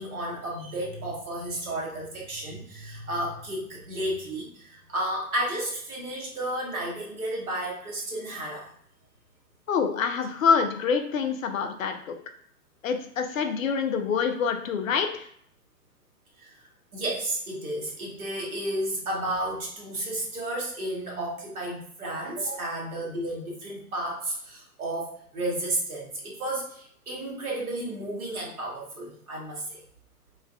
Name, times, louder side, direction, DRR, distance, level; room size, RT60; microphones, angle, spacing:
voice 1, 0.0-8.7 16.4-16.5 16.9-29.8, right 1 dB, 65° right, -3 dB, 1.2 m, -32 dB
voice 2, 9.7-12.1 12.8-15.3, left 6 dB, 60° left, 6 dB, 0.6 m, -26 dB
4.4 x 2.4 x 2.3 m, 0.64 s
figure-of-eight pair, 120°, 46 cm